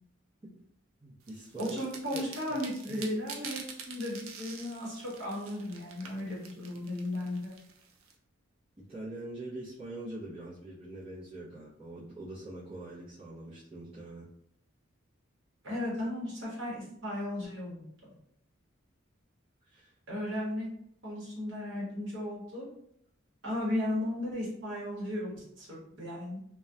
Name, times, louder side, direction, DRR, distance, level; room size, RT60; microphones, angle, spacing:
voice 1, 1.0-1.8 2.1-2.2 2.8-3.1 8.8-14.3 19.7-19.9, right 2 dB, 25° right, -10 dB, 0.6 m, -43 dB
sound 1, 1.3-8.1, right 5 dB, 80° right, 0.4 m, -46 dB
voice 2, 1.6-7.5 15.6-17.8 20.1-20.7 21.0-22.7 23.4-26.4, left 1 dB, 60° right, -5 dB, 1.0 m, -35 dB
2.6 x 2.2 x 2.2 m, 0.72 s
head